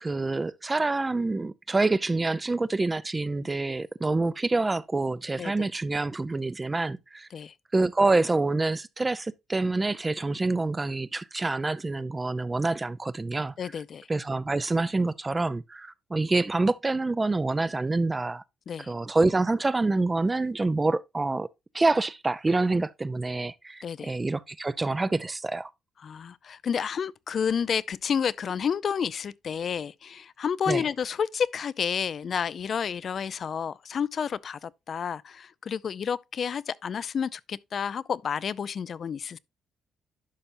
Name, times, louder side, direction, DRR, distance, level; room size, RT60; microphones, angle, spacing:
voice 1, 0.0-7.3 7.7-13.5 14.1-18.4 18.9-21.5 21.7-25.7 30.7-30.9, right 3 dB, 20° right, 0.4 m, -27 dB
voice 2, 13.6-14.1 18.7-18.9 23.8-24.2 26.0-39.4, left 7 dB, 50° left, 0.4 m, -30 dB
11.5 x 5.4 x 2.6 m
cardioid pair, 90°, 0 cm